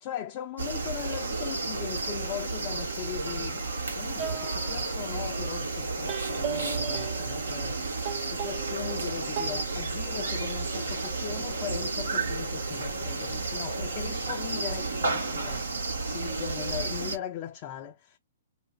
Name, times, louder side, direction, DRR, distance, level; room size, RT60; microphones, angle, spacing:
voice 1, 0.0-3.6 4.0-7.8 8.2-18.2, left 12 dB, 40° left, 0.4 m, -39 dB
sound 1, 0.6-17.2, right 3 dB, 85° right, 1.0 m, -32 dB
sound 2, 4.2-5.5 6.1-9.0 9.4-9.6, right 8 dB, 35° right, 0.9 m, -37 dB
2.5 x 2.4 x 3.1 m
hypercardioid pair, 125°, 0 cm